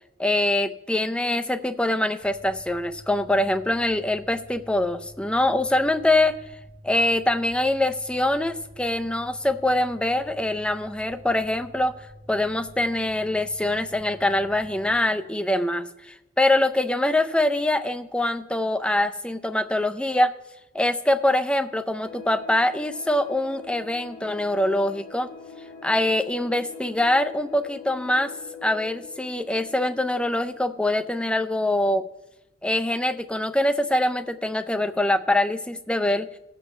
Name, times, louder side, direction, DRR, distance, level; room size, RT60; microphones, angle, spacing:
voice 1, 0.2-6.3 6.8-11.9 12.3-20.3 20.7-25.3 25.8-28.3 28.6-32.0 32.6-36.3, left 1 dB, 5° left, 8 dB, 0.4 m, -24 dB
Mechanical fan, 2.2-15.0, equal, 35° right, 2.0 m, -48 dB
sound 1, 22.0-31.4, left 5 dB, 40° left, 1.8 m, -43 dB
17.5 x 7.3 x 3.2 m, 0.95 s
head